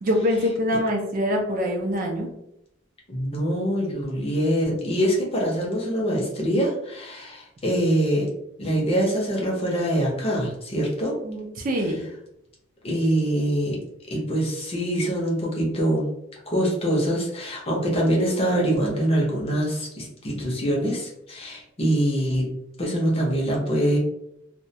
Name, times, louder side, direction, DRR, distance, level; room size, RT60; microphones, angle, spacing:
voice 1, 0.0-2.3 11.2-12.0, equal, 40° right, 2 dB, 0.4 m, -24 dB
voice 2, 3.1-8.3 8.6-11.2 12.8-13.8 14.1-16.1 16.5-22.5 22.8-24.0, equal, 30° left, -2 dB, 0.6 m, -24 dB
2.2 x 2.1 x 2.6 m, 0.81 s
head